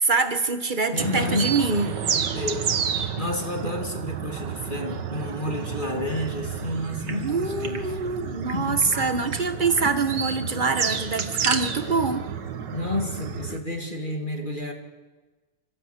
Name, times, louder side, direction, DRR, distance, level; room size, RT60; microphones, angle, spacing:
voice 1, 0.0-2.0 7.1-12.2, right 4 dB, 30° right, 9 dB, 1.4 m, -25 dB
voice 2, 0.9-1.6 2.3-7.9 8.5-8.9 12.7-14.7, left 2 dB, 25° left, 3 dB, 2.3 m, -30 dB
sound 1, 1.0-13.6, right 7 dB, 75° right, 1.9 m, -31 dB
sound 2, 6.8-7.8 8.1-8.2 8.5-9.0 9.3-9.4 9.7-9.9 10.9-11.6, right 5 dB, 55° right, 2.1 m, -33 dB
27.0 x 15.5 x 8.2 m, 1.3 s
omnidirectional pair, 1.9 m